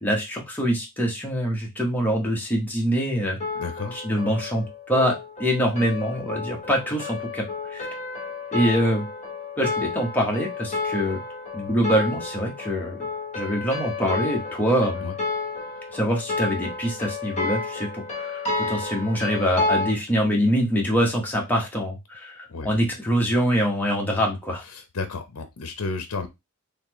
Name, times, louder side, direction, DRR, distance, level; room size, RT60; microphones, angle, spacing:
voice 1, 0.0-3.4 3.9-7.9 8.5-9.0 9.6-11.2 11.5-13.0 13.3-15.0 15.9-24.6, equal, 10° left, -1 dB, 1.3 m, -24 dB
sound 1, 3.4-19.9, left 3 dB, 30° left, 1.2 m, -31 dB
voice 2, 3.6-4.0 15.0-15.1 22.5-22.7 24.7-26.3, left 4 dB, 75° left, 7 dB, 0.7 m, -32 dB
4.2 x 3.2 x 3.0 m, 0.22 s
head